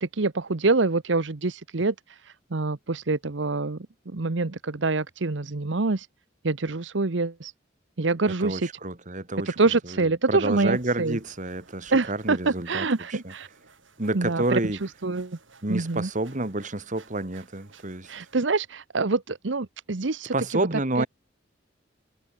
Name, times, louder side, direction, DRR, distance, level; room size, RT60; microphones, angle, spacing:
voice 1, 0.0-3.8 4.1-6.1 6.4-7.5 8.0-8.7 9.6-11.2 11.9-13.5 14.1-15.4 15.7-16.1 18.1-20.7 21.0-21.1, right 3 dB, 70° right, 1.0 m, -26 dB
voice 2, 8.4-9.6 9.9-13.3 14.0-14.8 15.6-18.1 20.3-21.1, right 2 dB, 40° right, 2.1 m, -29 dB
sound 1, 10.7-18.3, right 4 dB, 85° right, 7.1 m, -56 dB
head